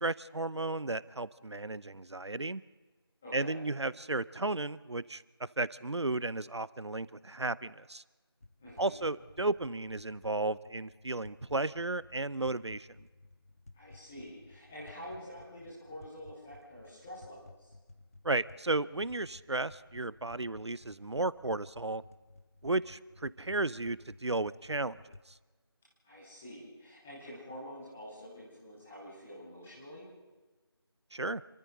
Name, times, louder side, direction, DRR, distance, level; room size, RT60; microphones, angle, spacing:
voice 1, 0.0-2.6 3.3-8.0 8.8-12.9 18.2-22.0 22.6-25.0 31.1-31.4, right 2 dB, 90° right, 19 dB, 0.8 m, -34 dB
voice 2, 3.2-3.6 8.6-8.9 13.7-17.7 26.0-30.1, equal, ahead, -9 dB, 0.7 m, -47 dB
sound 1, 8.4-25.2, left 2 dB, 35° left, 0.8 m, -57 dB
29.5 x 23.5 x 3.8 m, 1.3 s
figure-of-eight pair, 170°, 14 cm